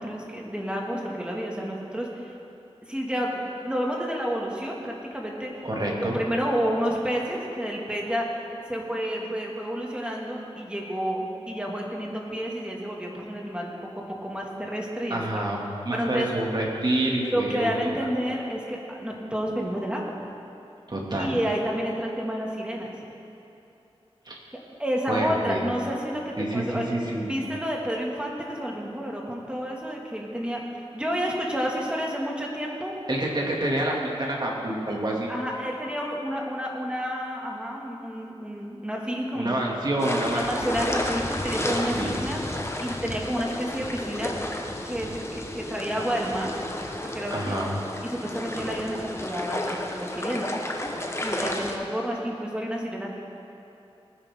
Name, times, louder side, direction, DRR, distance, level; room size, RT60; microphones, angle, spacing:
voice 1, 0.0-2.3 2.9-5.5 6.1-15.4 15.9-16.3 17.2-20.3 21.2-23.0 24.8-26.9 27.3-32.9 35.3-39.6 40.3-42.4 42.8-44.3 44.9-46.5 47.0-47.5 48.0-50.5 51.2-53.2, equal, 10° right, -2 dB, 2.2 m, -30 dB
voice 2, 5.6-6.2 15.1-15.6 15.8-18.1 20.9-21.4 24.2-24.4 25.1-25.6 26.4-27.3 33.1-35.4 39.3-40.8 42.0-42.2 47.3-47.7, right 1 dB, 45° right, -2 dB, 2.5 m, -27 dB
sound 1, 40.0-51.8, left 1 dB, 25° left, 1.2 m, -32 dB
19.5 x 9.9 x 3.8 m, 2.8 s
wide cardioid pair, 65°, 10 cm